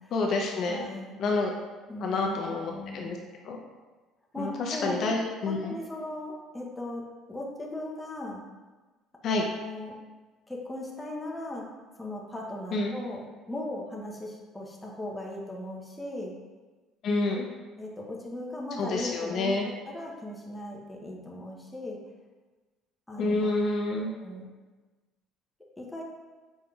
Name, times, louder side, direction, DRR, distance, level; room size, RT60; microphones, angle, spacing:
voice 1, 0.1-0.8 1.2-1.5 2.0-3.2 3.4-3.6 4.4-5.8 9.2-9.4 12.7-13.0 17.0-17.5 18.8-19.7 23.2-24.1, left 3 dB, 50° left, 0 dB, 0.4 m, -28 dB
voice 2, 0.7-1.2 1.9-3.2 4.3-5.2 5.5-8.4 9.6-10.0 10.5-11.7 12.0-16.3 17.8-22.0 23.1-23.5 23.9-24.5 25.8-26.0, left 1 dB, 10° left, -2 dB, 0.6 m, -38 dB
5.1 x 3.4 x 2.2 m, 1.3 s
cardioid pair, 140°, 0 cm